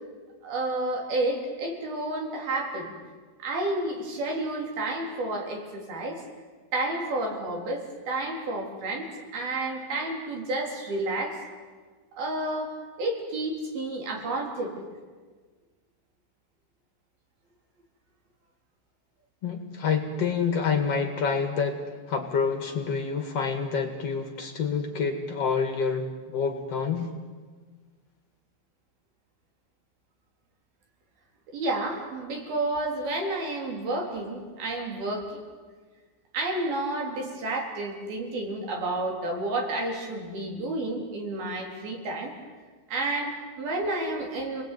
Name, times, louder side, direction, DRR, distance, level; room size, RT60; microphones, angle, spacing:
voice 1, 0.4-2.9 3.4-6.2 6.7-11.4 12.1-12.7 13.0-14.9 31.5-35.4 36.3-42.3 42.9-44.6, right 2 dB, 80° right, 1 dB, 5.9 m, -30 dB
voice 2, 19.4-27.1, left 5 dB, 45° left, 5 dB, 2.8 m, -28 dB
28.5 x 20.0 x 9.4 m, 1.5 s
omnidirectional pair, 4.2 m